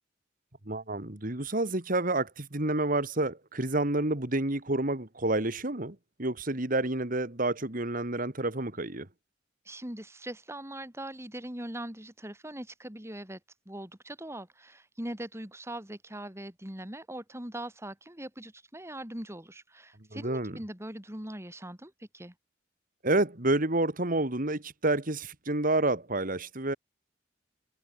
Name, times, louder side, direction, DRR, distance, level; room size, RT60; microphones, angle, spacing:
voice 1, 0.7-9.1 20.1-20.6 23.0-26.8, right 2 dB, 45° right, 2.5 m, -29 dB
voice 2, 9.7-13.4 13.7-22.3, right 1 dB, 15° right, 3.5 m, -41 dB
head